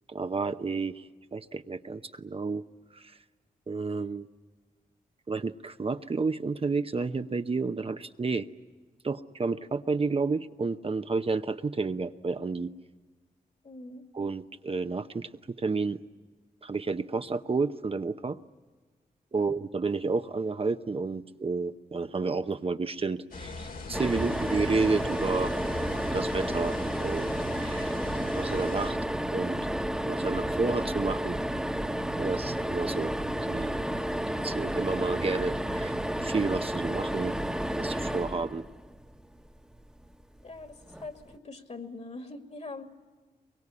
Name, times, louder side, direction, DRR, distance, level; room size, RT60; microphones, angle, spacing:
voice 1, 0.1-2.6 2.9-3.2 3.7-4.3 5.3-8.5 9.0-12.7 14.1-16.0 16.6-18.4 19.3-27.9 28.3-29.0 29.3-29.6 30.0-31.4 32.2-33.1 33.4-33.7 34.4-35.9 36.2-37.3 37.8-38.6, right 4 dB, 40° right, 8 dB, 0.9 m, -31 dB
voice 2, 13.6-14.0 19.3-19.4 40.4-42.9, left 3 dB, 45° left, 6 dB, 2.5 m, -43 dB
sound 1, 23.3-28.9, left 2 dB, 75° left, 2.8 m, -40 dB
sound 2, 23.9-39.2 40.9-41.1 41.3-41.4, right 1 dB, 5° right, 1.3 m, -31 dB
23.0 x 23.0 x 9.7 m, 1.4 s
cardioid pair, 70°, 15 cm